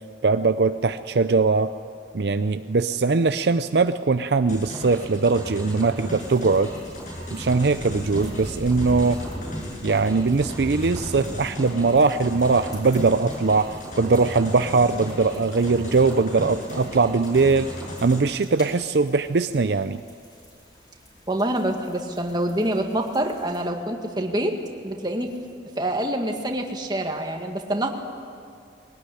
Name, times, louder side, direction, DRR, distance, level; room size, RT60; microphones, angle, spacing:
voice 1, 0.2-1.7 2.1-6.7 7.3-9.2 9.8-17.7 18.0-20.0, right 4 dB, 65° right, 10 dB, 0.5 m, -21 dB
sound 1, 4.5-18.2, equal, 45° left, 7.6 m, -36 dB
sound 2, 6.1-23.6, equal, 20° left, 5.1 m, -41 dB
voice 2, 21.3-24.6 24.8-25.3 25.8-27.9, right 1 dB, 25° right, 3 dB, 1.9 m, -26 dB
21.0 x 18.5 x 10.0 m, 2.3 s
head